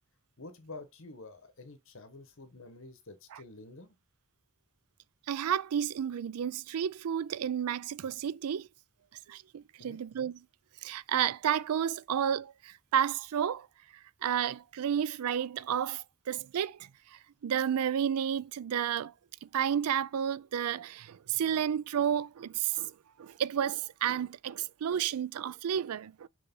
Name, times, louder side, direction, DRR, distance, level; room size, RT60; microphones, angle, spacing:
voice 1, 0.4-4.0 9.8-10.0, left 2 dB, 60° left, 1.2 m, -49 dB
voice 2, 5.3-8.7 9.3-10.4 10.8-13.7 14.2-19.1 19.4-22.9 23.2-26.3, right 9 dB, 85° right, 0.4 m, -31 dB
6.6 x 3.3 x 5.3 m
head